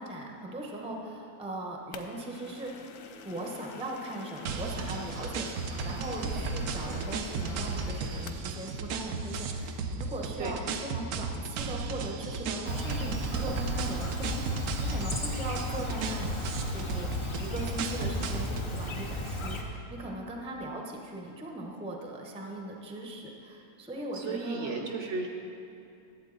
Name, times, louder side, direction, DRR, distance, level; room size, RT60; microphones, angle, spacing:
voice 1, 0.0-2.9 3.2-14.4 14.8-16.4 16.7-24.9, right 1 dB, 5° right, 0 dB, 0.6 m, -39 dB
sound 1, 1.9-8.5, left 5 dB, 65° left, 0.9 m, -47 dB
sound 2, 4.5-18.7, right 4 dB, 85° right, 1.1 m, -35 dB
Chirp tweet, 12.6-19.6, left 1 dB, 40° left, 0.4 m, -35 dB
voice 2, 24.1-25.3, right 4 dB, 60° right, 2 dB, 1.0 m, -34 dB
12.0 x 8.0 x 3.9 m, 2.7 s
omnidirectional pair, 1.6 m